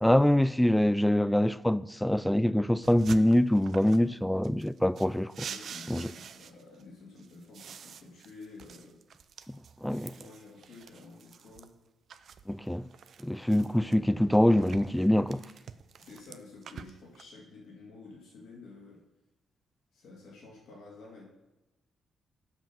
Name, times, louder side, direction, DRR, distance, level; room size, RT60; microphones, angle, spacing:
voice 1, 0.0-5.5 5.9-6.1 9.5-10.1 12.5-12.9 13.2-15.4, left 1 dB, 5° left, 0.3 m, -25 dB
sound 1, 2.8-4.1 4.4-6.8 7.2-11.7 12.1-13.9 14.3-17.2, right 7 dB, 60° right, 0.4 m, -47 dB
voice 2, 5.4-9.0 9.9-11.7 16.0-19.0 19.9-21.2, left 3 dB, 70° left, 2.5 m, -50 dB
7.1 x 5.6 x 5.5 m
hypercardioid pair, 45°, 0 cm